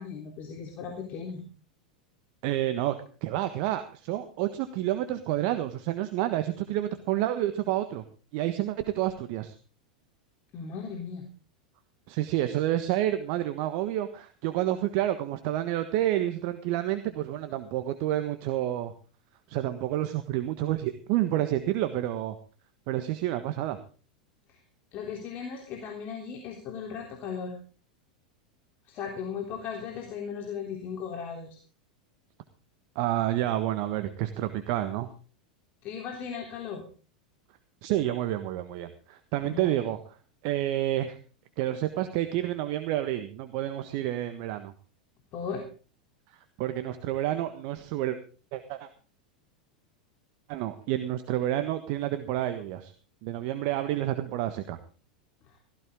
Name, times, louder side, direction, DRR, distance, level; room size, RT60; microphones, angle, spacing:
voice 1, 0.0-1.4 10.5-11.3 24.5-24.6 24.9-27.6 28.9-31.6 35.8-36.8 39.4-39.8 45.3-45.6, left 6 dB, 40° left, 2 dB, 3.4 m, -37 dB
voice 2, 2.4-3.0 3.2-8.0 8.3-9.5 12.1-18.9 19.5-22.3 22.9-23.8 32.9-35.1 37.8-40.0 40.4-41.2 41.6-44.7 46.6-48.2 48.5-48.9 50.5-52.9 53.2-54.8, right 13 dB, 50° right, 9 dB, 1.4 m, -29 dB
17.0 x 14.5 x 3.7 m, 0.37 s
figure-of-eight pair, 90°, 4 cm